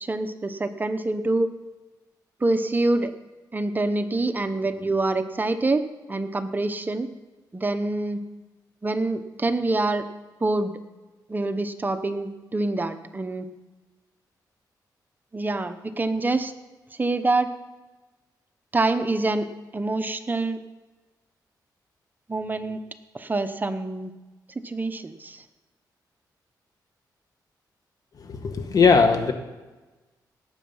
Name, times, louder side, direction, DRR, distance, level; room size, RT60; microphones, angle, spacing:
voice 1, 0.0-1.5 2.4-3.1 3.5-7.1 7.5-8.2 8.8-10.1 10.4-10.7 11.3-13.5 15.3-16.5 17.0-17.5 18.7-20.6 22.3-22.8 23.1-24.1 24.6-25.4, right 2 dB, 25° right, 9 dB, 0.9 m, -26 dB
voice 2, 28.2-29.3, left 5 dB, 55° left, 6 dB, 1.6 m, -19 dB
18.0 x 8.5 x 5.6 m, 1.2 s
cardioid pair, 90°, 7 cm